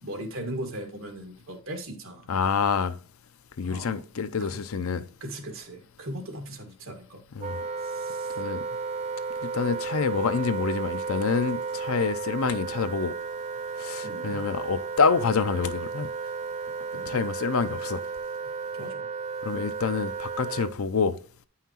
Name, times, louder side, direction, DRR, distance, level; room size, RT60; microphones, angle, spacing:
voice 1, 0.0-2.3 3.6-4.0 4.4-4.6 5.2-7.2 7.8-8.4 14.0-14.5 16.9-17.2 18.7-19.1, right 1 dB, 65° right, 1.8 m, -38 dB
voice 2, 2.3-3.0 3.6-5.1 7.4-7.6 8.4-8.6 9.4-13.1 13.8-16.1 17.1-18.0 19.4-21.2, left 5 dB, 75° left, 0.5 m, -27 dB
Wind instrument woodwind instrument, 7.4-20.8, right 5 dB, 30° right, 0.3 m, -33 dB
9.1 x 5.7 x 2.9 m
head